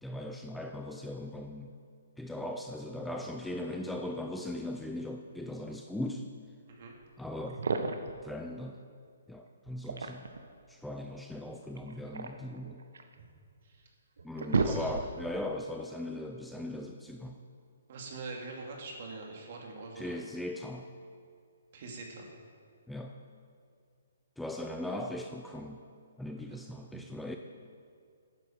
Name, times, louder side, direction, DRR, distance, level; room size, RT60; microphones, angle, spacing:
voice 1, 0.0-1.8 2.2-6.3 7.2-7.9 8.2-8.8 9.3-10.3 10.7-12.8 14.2-17.4 20.0-20.9 22.9-23.2 24.4-25.8 26.2-27.4, left 1 dB, ahead, 3 dB, 0.4 m, -39 dB
sound 1, 7.0-7.1 7.5-8.2 9.6-10.5 11.8-13.1 13.7-13.8 14.2-15.3, right 4 dB, 80° right, 1.0 m, -33 dB
voice 2, 14.5-14.9 17.9-20.2 21.7-22.3 26.9-27.0, right 3 dB, 45° right, 0 dB, 2.3 m, -44 dB
11.5 x 9.6 x 4.5 m, 2.4 s
hypercardioid pair, 160°, 0 cm